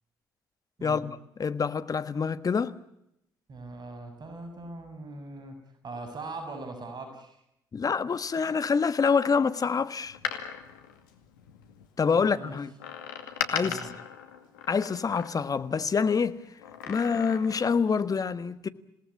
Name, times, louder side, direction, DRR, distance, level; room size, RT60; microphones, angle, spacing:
voice 1, 0.8-1.1 1.4-2.7 7.7-10.2 12.0-12.7 13.5-13.8 14.7-16.4 16.9-18.7, left 5 dB, 35° left, 1.5 m, -26 dB
voice 2, 3.5-5.6 5.8-7.4 12.0-12.6 13.6-13.9 18.6-18.7, right 2 dB, 45° right, 6.6 m, -41 dB
Door, 10.0-11.9 12.8-15.7 16.6-17.7 18.0-18.1, left 8 dB, 85° left, 2.4 m, -38 dB
28.0 x 18.5 x 8.5 m
hypercardioid pair, 50°, 10 cm